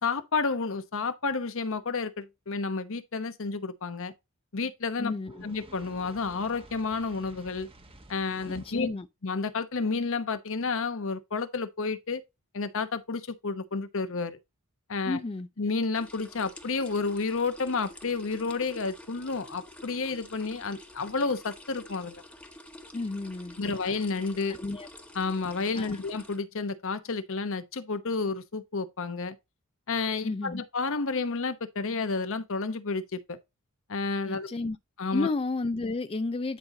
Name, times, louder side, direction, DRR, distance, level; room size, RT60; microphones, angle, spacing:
voice 1, 0.0-4.1 4.5-5.1 5.4-7.7 8.1-8.9 9.2-12.2 12.5-14.4 14.9-15.2 15.6-22.2 23.6-24.6 25.1-29.4 29.9-33.4 33.9-34.5 35.0-35.3, left 4 dB, 60° left, 0.9 m, -31 dB
voice 2, 5.0-5.4 8.5-9.1 15.0-15.5 22.9-23.8 24.5-24.9 25.8-26.0 30.2-30.6 34.3-34.8 35.1-36.6, left 3 dB, 25° left, 0.4 m, -32 dB
Fire, 5.3-8.9, right 1 dB, 25° right, 1.1 m, -52 dB
sound 1, 15.9-26.4, left 1 dB, 5° left, 1.1 m, -48 dB
10.5 x 5.4 x 2.7 m
head